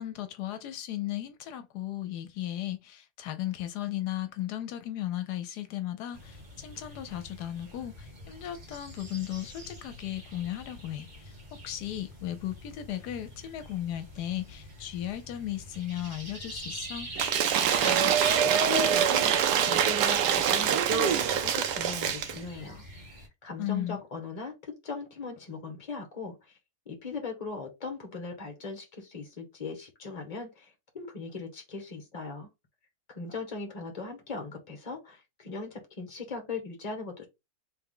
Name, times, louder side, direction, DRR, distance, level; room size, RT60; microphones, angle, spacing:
voice 1, 0.0-17.1 23.6-24.0, left 12 dB, 80° left, 1.2 m, -36 dB
sound 1, 6.1-23.3, right 1 dB, 30° right, 1.9 m, -43 dB
Cheering / Applause / Crowd, 17.2-22.4, right 8 dB, 85° right, 1.2 m, -25 dB
voice 2, 17.8-26.5 26.9-32.5 33.1-37.3, left 4 dB, 25° left, 1.2 m, -39 dB
3.5 x 3.4 x 3.6 m
omnidirectional pair, 1.7 m